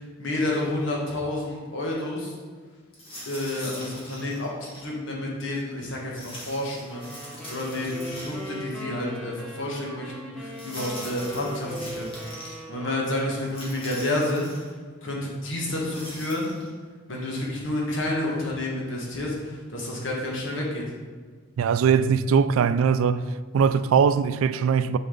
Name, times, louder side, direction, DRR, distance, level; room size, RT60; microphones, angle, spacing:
voice 1, 0.2-2.4 3.3-12.3 12.7-14.5 15.0-16.5 17.1-20.8, left 1 dB, 65° left, 1.5 m, -30 dB
sound 1, 2.9-4.9 6.1-8.7 9.0-9.1 10.5-12.6 13.5-14.7 15.6-16.7, equal, 25° left, 1.7 m, -42 dB
sound 2, 6.9-13.7, equal, ahead, 0.9 m, -39 dB
voice 2, 21.6-23.2 23.5-25.0, right 6 dB, 80° right, 0.3 m, -21 dB
8.4 x 5.1 x 3.9 m
head